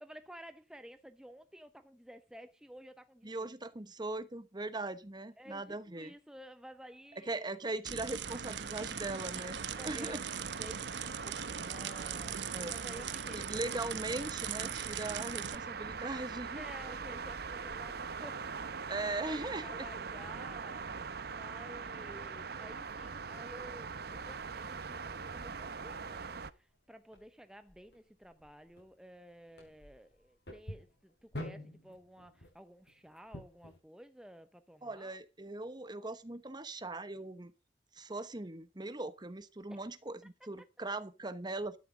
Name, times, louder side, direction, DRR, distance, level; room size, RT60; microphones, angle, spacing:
voice 1, 0.0-3.5 5.4-7.5 9.8-13.7 16.5-18.6 19.2-20.8 21.2-35.2 39.7-39.8 40.4-40.5, equal, 5° right, 0.7 m, -53 dB
voice 2, 3.2-6.1 7.2-10.2 12.5-12.8 13.3-16.7 18.9-19.9 34.8-37.5 37.9-41.8, right 2 dB, 25° right, 1.1 m, -40 dB
sound 1, 7.8-15.5, right 8 dB, 75° right, 1.0 m, -40 dB
sound 2, 8.2-26.5, right 5 dB, 60° right, 0.8 m, -42 dB
sound 3, 22.2-33.8, left 1 dB, 70° left, 7.3 m, -52 dB
13.0 x 9.9 x 5.0 m
head